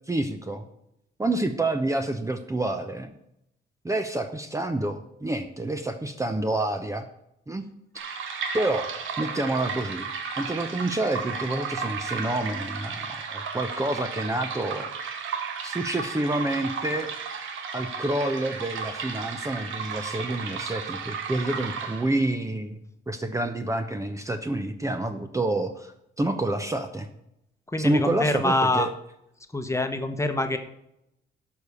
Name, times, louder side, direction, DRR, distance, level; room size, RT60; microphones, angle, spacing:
voice 1, 0.1-0.6 1.2-3.1 3.8-7.1 7.5-7.6 7.9-8.1 8.5-8.9 9.2-10.1 10.4-14.9 15.6-17.1 17.7-22.8 23.1-27.1 27.8-28.9, right 2 dB, 15° right, 7 dB, 0.8 m, -28 dB
sound 1, 8.0-22.3, right 5 dB, 80° right, 1.5 m, -34 dB
voice 2, 27.7-28.9 29.5-30.6, left 2 dB, 15° left, 7 dB, 1.2 m, -25 dB
11.5 x 4.9 x 7.0 m, 0.81 s
cardioid pair, 90°, 20 cm